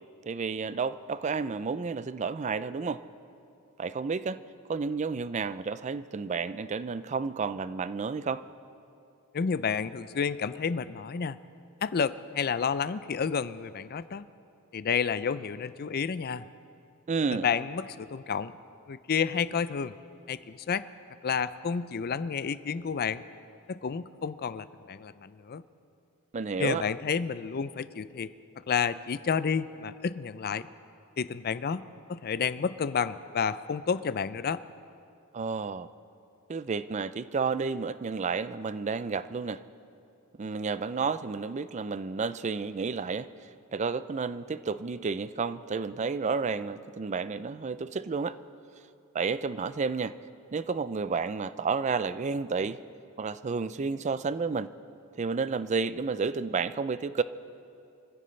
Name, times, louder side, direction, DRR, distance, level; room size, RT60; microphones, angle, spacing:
voice 1, 0.3-3.0 3.8-4.4 4.7-8.4 17.1-17.5 26.3-26.8 35.3-35.9 36.5-39.6 40.4-48.4 49.1-50.2 50.5-52.8 53.2-54.7 55.2-57.2, right 5 dB, 35° right, 14 dB, 0.4 m, -31 dB
voice 2, 9.3-11.4 11.8-14.3 14.7-16.4 17.3-18.5 18.9-20.0 20.3-20.9 21.2-23.2 23.7-25.6 26.6-28.3 28.7-30.7 31.2-31.8 32.1-34.6, left 6 dB, 45° left, 15 dB, 0.4 m, -30 dB
25.0 x 15.5 x 3.3 m, 2.6 s
head